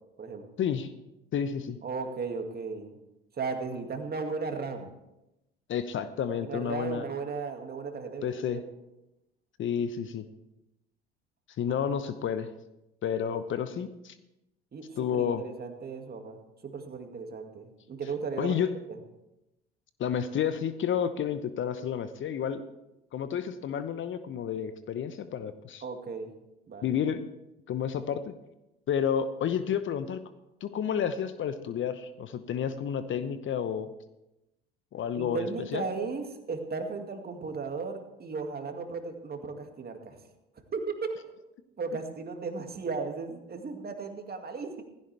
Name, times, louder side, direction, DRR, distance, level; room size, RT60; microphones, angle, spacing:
voice 1, 0.6-0.9 1.3-1.8 5.7-7.1 8.2-8.6 9.6-10.2 11.6-12.5 13.0-14.1 15.0-15.4 18.4-18.7 20.0-22.6 23.1-25.8 26.8-27.2 27.7-28.3 28.9-30.2 30.6-33.9 34.9-35.5 35.7-35.8, left 8 dB, 45° left, 12 dB, 1.0 m, -30 dB
voice 2, 1.8-3.0 3.3-4.9 6.3-8.6 11.7-11.8 14.7-18.6 18.9-19.0 25.8-26.3 26.7-26.9 35.2-40.2 40.7-41.3 41.8-44.8, right 4 dB, 35° right, 5 dB, 2.2 m, -36 dB
16.5 x 15.5 x 3.4 m, 0.92 s
hypercardioid pair, 65°, 29 cm